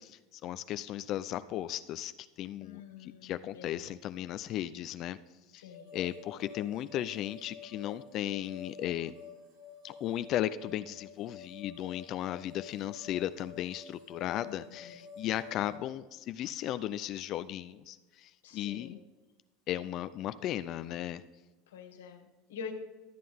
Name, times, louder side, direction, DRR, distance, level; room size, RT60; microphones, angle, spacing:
voice 1, 0.0-2.1 2.4-5.2 5.5-9.1 9.8-19.0 19.7-21.2, left 12 dB, 50° left, 13 dB, 0.4 m, -36 dB
voice 2, 2.6-4.0 5.6-6.0 14.4-15.1 18.4-19.0 21.7-22.7, left 7 dB, 90° left, 3 dB, 1.7 m, -47 dB
sound 1, 5.7-15.8, left 6 dB, 85° right, 2.7 m, -50 dB
13.0 x 7.6 x 3.6 m, 1.2 s
hypercardioid pair, 105°, 0 cm